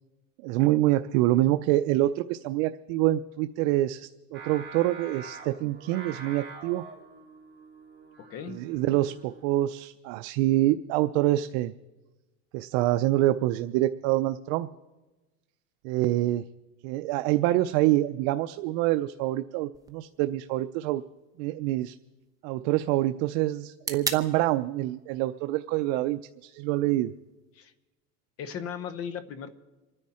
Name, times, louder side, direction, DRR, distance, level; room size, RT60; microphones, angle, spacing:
voice 1, 0.4-6.8 8.5-11.7 12.5-14.7 15.8-16.4 16.8-21.0 21.4-21.9 22.4-27.1, right 15 dB, 85° right, 10 dB, 0.5 m, -26 dB
Singing, 4.3-9.6, right 4 dB, 35° right, 3.5 m, -45 dB
voice 2, 8.2-8.6 27.5-27.7 28.4-29.6, left 7 dB, 45° left, 13 dB, 0.9 m, -37 dB
sound 1, 19.7-27.7, right 4 dB, 10° right, 0.9 m, -42 dB
28.0 x 9.9 x 4.3 m, 1.1 s
cardioid pair, 145°, 33 cm